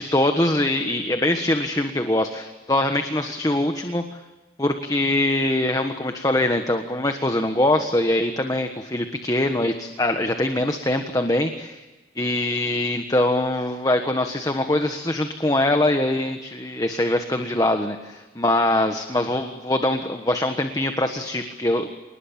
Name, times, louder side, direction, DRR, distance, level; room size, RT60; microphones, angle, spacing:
voice 1, 0.0-4.2 4.6-11.8 12.1-21.9, left 1 dB, 20° left, 6 dB, 1.4 m, -23 dB
27.5 x 20.0 x 8.9 m, 1.2 s
head